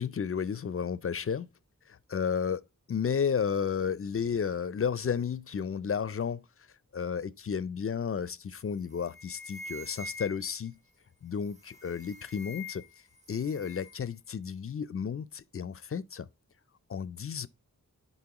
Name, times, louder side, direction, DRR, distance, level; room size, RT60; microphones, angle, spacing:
voice 1, 0.0-1.5 1.9-6.4 6.9-10.8 11.2-12.8 13.3-16.3 16.9-17.5, left 7 dB, 40° left, 0.4 m, -32 dB
sound 1, 8.5-8.7 9.0-10.7 11.5-13.0 13.2-14.0, left 2 dB, 20° right, 1.2 m, -45 dB
10.5 x 4.2 x 2.9 m
wide cardioid pair, 70°, 33 cm